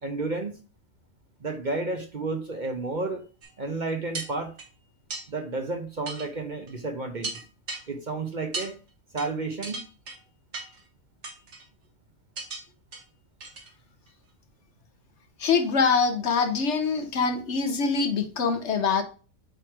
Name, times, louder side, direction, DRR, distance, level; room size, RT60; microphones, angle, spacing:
voice 1, 0.0-0.5 1.4-3.2 3.6-4.5 5.3-7.4 7.9-8.8 9.1-9.8, right 3 dB, 40° right, 5 dB, 0.9 m, -31 dB
sound 1, 3.4-3.5 4.1-4.7 5.1-5.2 6.1-6.3 6.7-6.8 7.2-7.8 8.5-8.7 9.2-9.3 9.6-10.2 10.5-10.8 11.2-11.6 12.4-12.6 12.9-13.0 13.4-13.7 14.1-14.2, right 3 dB, 55° right, 1.7 m, -36 dB
voice 2, 15.4-19.0, left 5 dB, 60° left, 8 dB, 1.1 m, -24 dB
7.8 x 3.3 x 4.5 m, 0.35 s
omnidirectional pair, 1.4 m